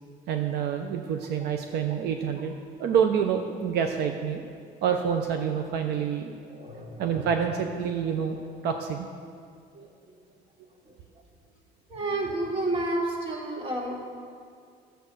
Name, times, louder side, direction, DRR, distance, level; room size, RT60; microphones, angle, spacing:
voice 1, 0.3-2.5 2.8-4.4 4.8-6.3 7.0-8.4 8.6-9.1, right 7 dB, 75° right, 5 dB, 0.8 m, -27 dB
voice 2, 6.5-7.3 9.7-9.9 10.8-10.9 11.9-14.1, right 2 dB, 35° right, -2 dB, 2.8 m, -31 dB
12.0 x 8.0 x 6.4 m, 2.3 s
cardioid pair, 110°, 17 cm